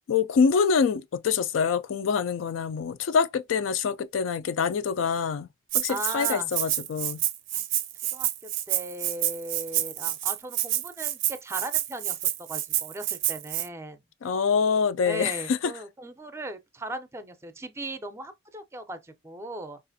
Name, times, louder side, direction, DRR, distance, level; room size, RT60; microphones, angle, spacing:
voice 1, 0.1-5.5 5.7-7.2 14.2-15.7, left 6 dB, 80° left, 0.4 m, -25 dB
Rattle (instrument), 5.7-13.7, right 12 dB, 70° right, 0.4 m, -28 dB
voice 2, 5.9-6.5 7.5-7.6 8.1-14.0 15.1-19.8, right 2 dB, 15° right, 0.4 m, -38 dB
4.8 x 2.5 x 2.6 m
head